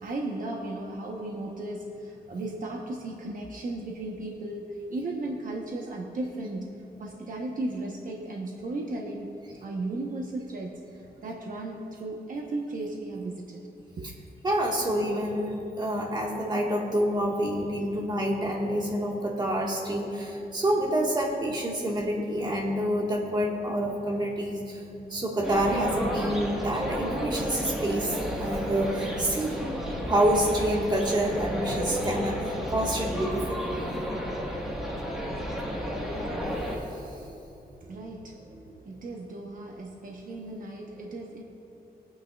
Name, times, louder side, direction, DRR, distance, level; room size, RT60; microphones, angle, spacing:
voice 1, 0.0-6.7 7.0-10.8 11.2-13.7 14.0-14.1 37.8-38.4 38.9-41.4, right 2 dB, 55° right, -1 dB, 0.9 m, -35 dB
voice 2, 14.4-24.8 25.1-29.6 30.0-34.0 36.4-36.8 37.0-37.4 37.8-37.9 38.4-38.7, right 1 dB, 25° right, -2 dB, 1.6 m, -28 dB
sound 1, 25.4-36.8, equal, 5° right, 1.4 m, -32 dB
22.5 x 9.2 x 2.3 m, 2.8 s
wide cardioid pair, 175°, 16 cm